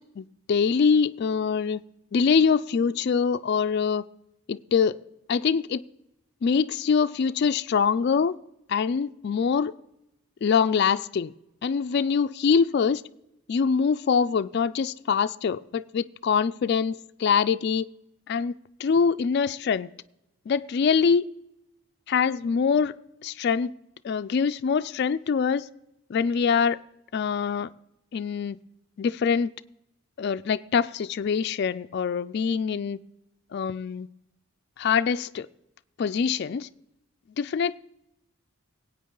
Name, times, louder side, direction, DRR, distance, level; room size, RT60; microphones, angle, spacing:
voice 1, 0.2-1.8 2.1-4.0 4.5-5.0 5.3-5.8 6.4-8.3 8.7-9.7 10.4-11.3 11.6-13.0 13.5-17.9 18.3-18.5 18.8-19.9 20.5-21.2 22.1-22.9 23.2-23.7 24.0-25.7 26.1-26.8 27.1-27.7 28.1-28.6 29.0-29.5 30.2-33.0 33.5-34.1 34.8-35.5 36.0-36.7 37.4-37.8, left 6 dB, 50° left, 0.3 m, -24 dB
19.0 x 8.6 x 3.8 m
head